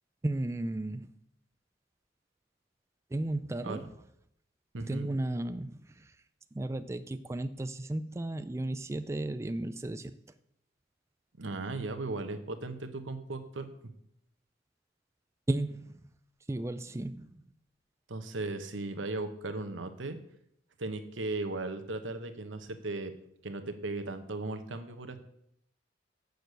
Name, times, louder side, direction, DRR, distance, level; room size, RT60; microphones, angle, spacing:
voice 1, 0.2-1.1 3.1-3.9 4.8-6.2 6.5-10.1 15.5-16.1 16.5-17.4, right 1 dB, 15° right, 0.3 m, -34 dB
voice 2, 4.7-5.1 11.4-13.7 18.1-20.2 20.8-23.1 23.4-25.2, right 2 dB, 90° right, 1.0 m, -37 dB
7.9 x 6.6 x 6.8 m
head